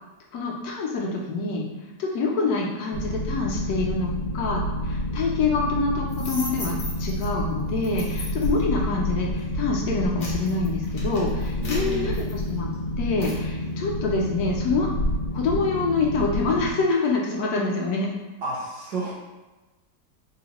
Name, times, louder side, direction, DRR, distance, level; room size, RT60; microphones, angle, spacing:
voice 1, 0.3-1.7 2.0-9.3 9.5-14.9 15.3-18.1, left 3 dB, 70° left, -2 dB, 1.1 m, -26 dB
Boat Water vehicle, 2.9-16.7, left 1 dB, 85° left, 1.3 m, -29 dB
sound 1, 6.1-7.3 7.8-8.6 9.2-9.4 9.9-12.7 13.2-13.4, left 1 dB, 50° left, 0.7 m, -37 dB
voice 2, 11.5-12.1 18.4-19.1, right 2 dB, 65° right, -5 dB, 1.2 m, -31 dB
3.8 x 2.1 x 2.9 m, 1.2 s
omnidirectional pair, 1.8 m